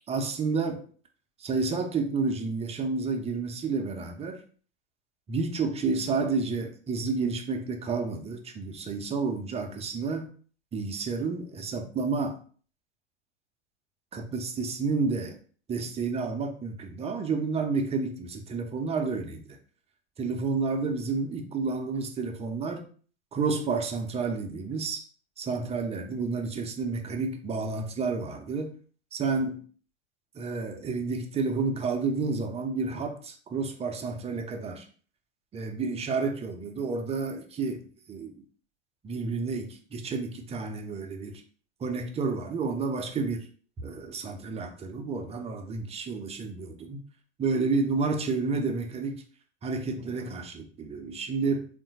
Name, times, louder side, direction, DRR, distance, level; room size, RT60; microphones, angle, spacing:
voice 1, 0.1-0.8 1.4-4.4 5.3-10.3 10.7-12.4 14.1-15.4 15.7-19.4 20.2-22.9 23.3-25.1 25.4-28.7 29.1-29.6 30.3-34.9 35.5-38.3 39.0-41.4 41.8-43.4 43.8-47.0 47.4-49.2 49.6-51.7, right 4 dB, 20° right, 4 dB, 0.6 m, -30 dB
3.6 x 2.6 x 4.0 m, 0.43 s
figure-of-eight pair, 80°, 34 cm